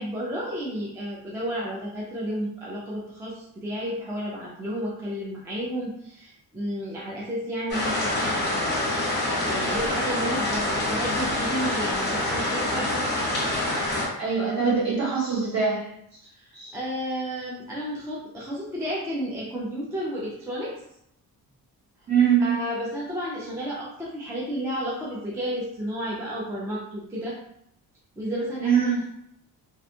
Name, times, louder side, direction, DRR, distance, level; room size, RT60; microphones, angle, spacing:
voice 1, 0.0-8.5 9.3-12.9 16.4-20.7 22.4-27.4 28.2-28.9, equal, 10° right, -5 dB, 0.3 m, -32 dB
sound 1, 7.7-14.1, left 1 dB, 25° left, 0.7 m, -26 dB
voice 2, 14.2-15.9 16.5-16.7 22.1-22.6 28.6-29.0, right 6 dB, 45° right, -8 dB, 1.3 m, -23 dB
2.4 x 2.2 x 2.7 m, 0.75 s
wide cardioid pair, 175°, 38 cm